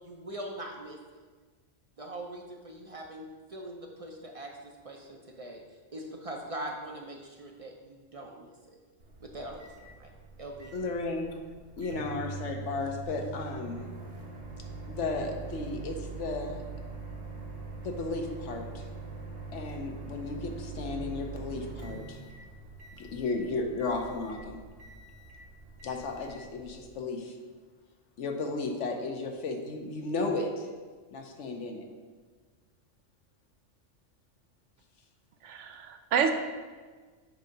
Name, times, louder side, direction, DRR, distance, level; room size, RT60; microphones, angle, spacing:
voice 1, 0.0-1.2 2.0-5.6 5.9-8.8 9.2-10.1 10.4-10.8, right 1 dB, 40° right, 1 dB, 0.5 m, -42 dB
Microwave oven, 9.0-27.0, right 4 dB, 65° right, 1.4 m, -43 dB
voice 2, 10.7-11.4 11.8-14.0 14.9-16.6 17.8-18.8 19.5-22.2 22.9-24.6 25.8-27.4 28.2-30.7 31.1-31.9, left 3 dB, 75° left, 3 dB, 1.1 m, -34 dB
voice 3, 35.4-36.3, right 7 dB, 90° right, 6 dB, 0.9 m, -28 dB
8.0 x 2.8 x 5.2 m, 1.5 s
omnidirectional pair, 1.2 m